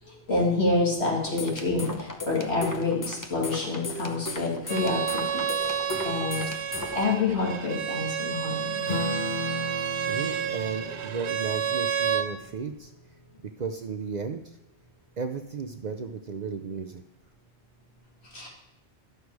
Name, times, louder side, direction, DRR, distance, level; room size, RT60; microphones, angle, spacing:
voice 1, 0.0-5.7 6.0-8.8 18.2-18.5, left 3 dB, 70° left, -3 dB, 2.6 m, -28 dB
sound 1, 1.2-7.1, left 2 dB, 20° left, 0.7 m, -36 dB
Bowed string instrument, 4.7-12.3, right 8 dB, 75° right, 1.0 m, -30 dB
Acoustic guitar / Strum, 8.9-13.7, left 3 dB, 45° left, 1.2 m, -37 dB
voice 2, 9.8-12.9 13.6-14.4 15.2-17.0, right 5 dB, 50° right, 6 dB, 0.6 m, -34 dB
11.5 x 6.6 x 4.7 m, 0.86 s
omnidirectional pair, 1.2 m